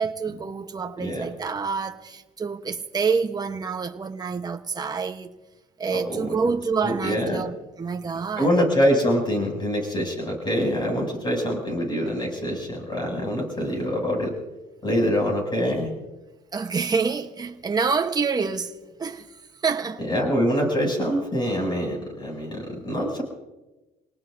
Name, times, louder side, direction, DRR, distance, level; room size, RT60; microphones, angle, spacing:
voice 1, 0.0-5.3 5.8-8.6 16.5-20.0, right 5 dB, 25° right, 1.1 m, -27 dB
voice 2, 5.9-6.3 6.8-7.4 8.4-14.3 14.8-15.9 20.0-23.2, equal, 25° left, 7.2 m, -25 dB
28.0 x 19.0 x 2.7 m
cardioid pair, 110°, 17 cm